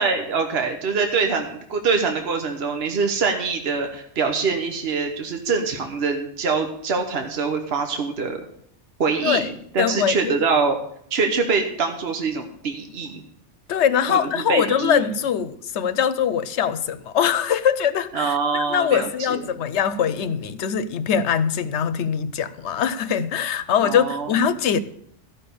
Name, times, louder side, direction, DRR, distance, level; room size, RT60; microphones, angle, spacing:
voice 1, 0.0-8.4 9.0-10.8 11.1-13.2 14.1-15.0 18.1-19.4 23.8-24.3, right 4 dB, 65° right, 1.3 m, -24 dB
voice 2, 9.8-10.4 13.7-24.8, left 8 dB, 80° left, 1.0 m, -22 dB
13.5 x 6.0 x 6.9 m
omnidirectional pair, 1.2 m